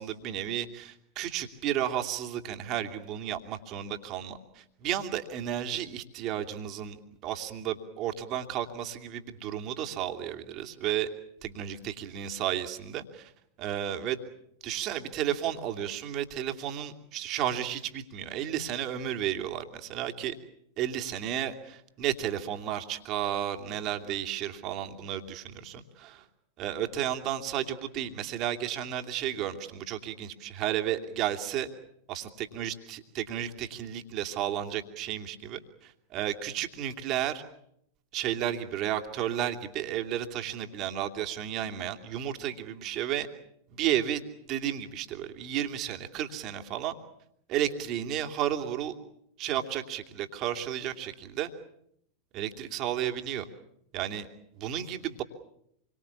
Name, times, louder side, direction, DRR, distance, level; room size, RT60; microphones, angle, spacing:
voice 1, 0.0-11.1 11.4-13.3 13.6-14.2 14.6-20.4 20.8-26.2 26.6-31.7 32.1-37.4 38.1-43.3 43.8-44.2 44.5-46.9 47.5-48.9 49.4-51.5 52.3-53.5 53.9-54.3 54.6-55.2, right 11 dB, 35° right, 5 dB, 2.7 m, -33 dB
28.0 x 24.0 x 7.2 m, 0.73 s
figure-of-eight pair, 90°, 0 cm